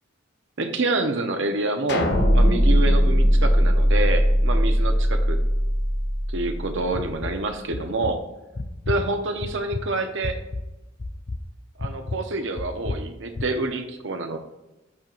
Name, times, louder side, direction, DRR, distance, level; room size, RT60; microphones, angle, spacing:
voice 1, 0.6-5.4 6.3-8.2 8.9-10.4 11.8-14.4, right 2 dB, 70° right, 6 dB, 1.0 m, -27 dB
sound 1, 1.9-4.4, left 1 dB, 60° left, 1.2 m, -30 dB
sound 2, 2.1-7.1, equal, 35° right, 1.8 m, -19 dB
sound 3, 6.9-7.4 7.7-8.1 8.5-9.0 9.4-9.8 10.2-10.6 11.0-11.4 11.8-12.2 12.6-13.0 13.4-13.5, left 2 dB, 35° left, 0.5 m, -30 dB
13.5 x 4.6 x 2.6 m, 1.0 s
head